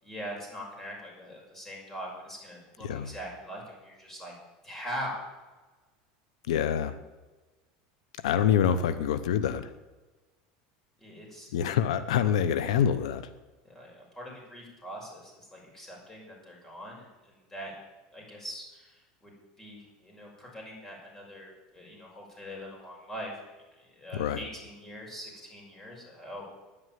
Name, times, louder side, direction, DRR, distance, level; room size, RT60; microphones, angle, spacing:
voice 1, 0.0-4.4 4.6-5.2 11.0-11.5 13.6-17.7 18.1-23.3 24.0-26.4, equal, 10° left, -2 dB, 6.0 m, -42 dB
voice 2, 6.5-6.9 8.2-9.7 11.5-13.3 24.1-24.4, left 9 dB, 90° left, 13 dB, 0.8 m, -26 dB
10.5 x 9.8 x 9.2 m, 1.2 s
supercardioid pair, 130°, 3 cm